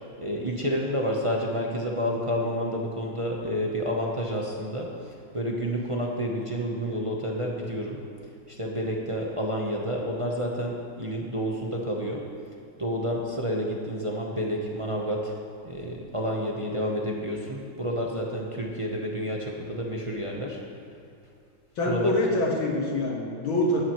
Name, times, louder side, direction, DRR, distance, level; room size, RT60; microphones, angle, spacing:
voice 1, 0.2-5.0 5.3-8.0 8.5-12.3 12.8-15.3 15.6-20.6 21.8-22.1, equal, 30° right, -2 dB, 0.5 m, -29 dB
voice 2, 21.8-23.8, left 1 dB, 75° left, -1 dB, 2.3 m, -25 dB
16.0 x 12.0 x 3.1 m, 2.6 s
omnidirectional pair, 2.2 m